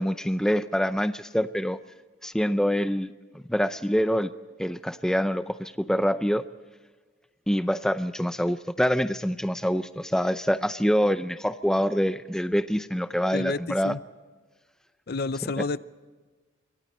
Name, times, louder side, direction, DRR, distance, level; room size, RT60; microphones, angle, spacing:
voice 1, 0.0-1.8 2.2-4.3 4.6-6.4 7.5-13.9, equal, 5° left, 11 dB, 0.5 m, -25 dB
voice 2, 13.3-14.0 15.1-15.8, left 3 dB, 50° left, 16 dB, 0.5 m, -30 dB
27.0 x 24.0 x 4.3 m, 1.4 s
head